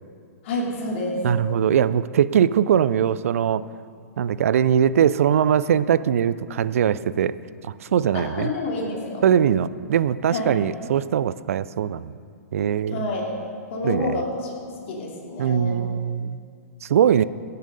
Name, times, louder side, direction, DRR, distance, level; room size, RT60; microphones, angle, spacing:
voice 1, 0.4-1.2 8.1-9.2 10.3-10.6 12.9-13.3 13.7-14.5 14.9-15.8, left 2 dB, 45° left, -1 dB, 2.5 m, -28 dB
voice 2, 1.2-3.6 4.2-7.3 7.6-8.5 9.2-12.2 12.5-13.0 13.8-14.2 15.4-16.4 16.8-17.2, right 9 dB, 60° right, 17 dB, 0.4 m, -21 dB
16.0 x 6.8 x 5.2 m, 2.3 s
figure-of-eight pair, 110°, 9 cm